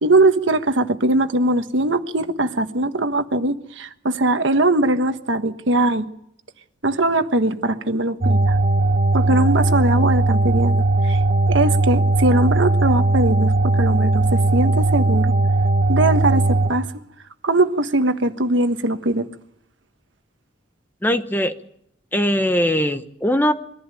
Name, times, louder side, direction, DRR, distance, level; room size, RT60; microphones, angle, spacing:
voice 1, 0.0-6.1 6.8-8.6 9.1-11.2 11.5-15.3 15.9-16.9 17.4-19.3, right 2 dB, 75° right, 8 dB, 1.4 m, -20 dB
sound 1, 8.2-16.7, right 2 dB, 50° right, 1.3 m, -18 dB
voice 2, 21.0-21.5 22.1-23.5, equal, 10° left, 9 dB, 1.0 m, -20 dB
23.0 x 15.0 x 9.1 m, 0.75 s
head